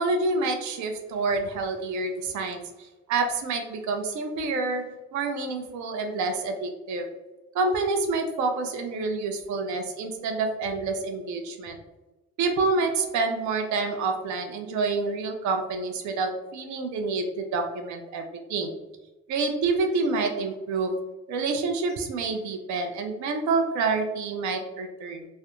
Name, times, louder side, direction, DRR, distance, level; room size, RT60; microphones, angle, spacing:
voice 1, 0.0-2.6 3.1-4.8 5.1-7.1 7.5-11.8 12.4-18.2 18.5-18.7 19.3-20.9 21.3-25.3, right 3 dB, 75° right, 4 dB, 0.5 m, -27 dB
2.3 x 2.1 x 2.8 m, 1.1 s
cardioid pair, 115°, 29 cm